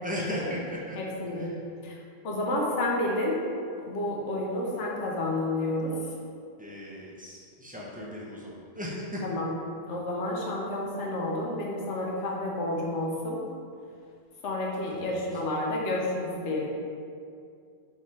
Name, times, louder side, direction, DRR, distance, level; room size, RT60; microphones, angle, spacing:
voice 1, 0.0-1.0 1.4-1.6 6.6-9.2 14.9-15.6, left 1 dB, 10° right, -5 dB, 0.4 m, -37 dB
voice 2, 1.0-1.5 1.8-1.9 2.2-3.4 3.9-5.9 9.2-9.5 9.9-13.4 14.4-16.7, left 1 dB, 90° left, -3 dB, 1.1 m, -30 dB
4.1 x 3.7 x 3.1 m, 2.4 s
omnidirectional pair, 1.2 m